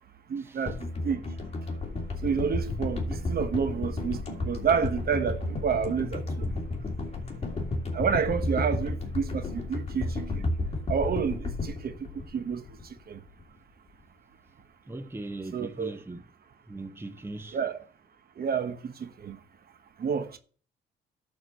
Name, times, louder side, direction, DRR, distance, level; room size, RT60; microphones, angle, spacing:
voice 1, 0.3-1.2 2.2-6.5 7.9-10.5 10.9-12.6 13.1-13.2 15.5-16.0 17.5-17.8 18.4-19.4 20.0-20.4, right 6 dB, 50° right, 1.1 m, -29 dB
sound 1, 0.7-13.0 13.3-13.4, left 2 dB, 30° left, 2.8 m, -32 dB
voice 2, 14.9-16.2 16.7-17.6, right 2 dB, 10° right, 0.8 m, -39 dB
11.0 x 4.8 x 6.4 m
cardioid pair, 90°, 20 cm